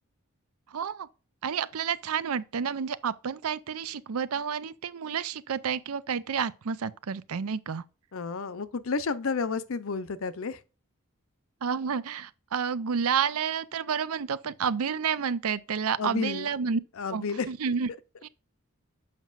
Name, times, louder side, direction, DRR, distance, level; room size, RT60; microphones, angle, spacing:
voice 1, 0.7-1.1 1.4-7.8 11.6-16.8 17.1-17.9 18.2-18.3, right 6 dB, 85° right, 0.5 m, -30 dB
voice 2, 8.1-10.6 16.0-16.5 17.0-17.5, left 4 dB, 65° left, 0.6 m, -31 dB
7.4 x 5.8 x 2.4 m
head